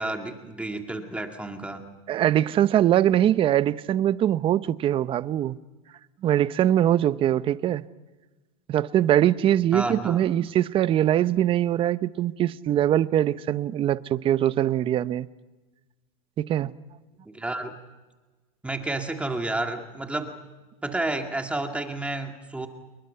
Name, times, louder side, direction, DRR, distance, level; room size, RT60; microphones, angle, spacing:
voice 1, 0.0-1.9 9.7-10.2 17.3-17.7 18.6-20.4 20.8-22.7, right 2 dB, 5° right, 2.1 m, -30 dB
voice 2, 2.1-5.6 6.2-7.8 8.7-15.3 16.4-16.7, right 11 dB, 30° right, 0.8 m, -22 dB
29.0 x 22.5 x 5.7 m
supercardioid pair, 135°, 18 cm